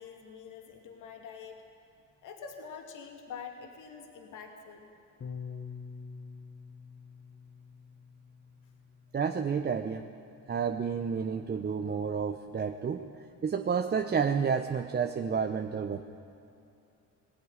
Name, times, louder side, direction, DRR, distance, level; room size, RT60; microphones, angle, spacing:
voice 1, 0.0-1.6 2.2-4.9, left 6 dB, 70° left, 3 dB, 2.8 m, -45 dB
Bass guitar, 5.2-11.4, left 5 dB, 35° left, 1.5 m, -47 dB
voice 2, 9.1-10.1 10.5-13.1 13.4-16.0, right 6 dB, 30° right, 5 dB, 0.9 m, -30 dB
21.0 x 17.0 x 9.9 m, 2.8 s
cardioid pair, 120°, 32 cm